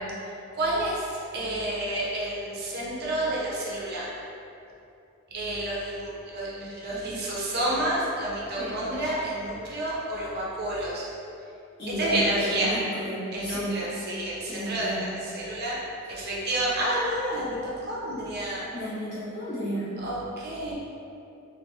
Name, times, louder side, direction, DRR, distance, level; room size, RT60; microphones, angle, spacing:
voice 1, 0.5-4.1 5.3-11.1 12.0-12.7 13.3-15.8 16.1-18.7 20.0-20.7, right 1 dB, 45° right, -6 dB, 0.6 m, -29 dB
voice 2, 11.8-13.8 14.5-15.1 18.7-19.9, equal, 50° left, -11 dB, 1.1 m, -32 dB
3.9 x 2.1 x 2.7 m, 2.7 s
head